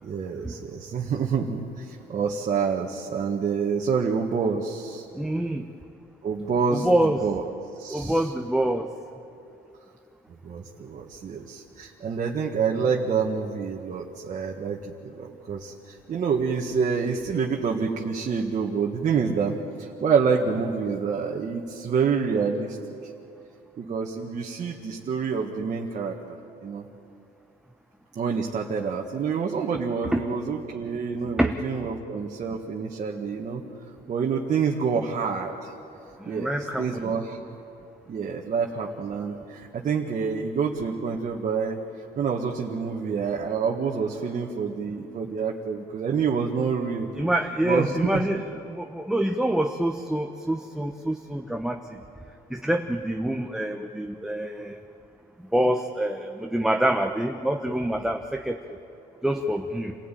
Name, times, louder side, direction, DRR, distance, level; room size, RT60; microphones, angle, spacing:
voice 1, 0.0-5.0 6.2-7.4 7.8-8.3 10.3-22.8 23.0-23.1 23.8-26.2 26.6-26.8 28.2-33.6 34.1-35.7 36.2-36.5 36.8-37.4 38.1-41.8 42.2-47.1 47.6-48.2, right 6 dB, 45° right, -1 dB, 1.8 m, -27 dB
voice 2, 5.1-5.6 6.7-7.2 7.9-8.9 30.1-30.2 31.4-31.5 36.2-37.0 47.2-51.8 52.5-54.8 55.5-58.6 59.2-60.0, right 1 dB, 5° right, 4 dB, 1.0 m, -26 dB
27.5 x 16.5 x 9.3 m, 2.7 s
cardioid pair, 110°, 17 cm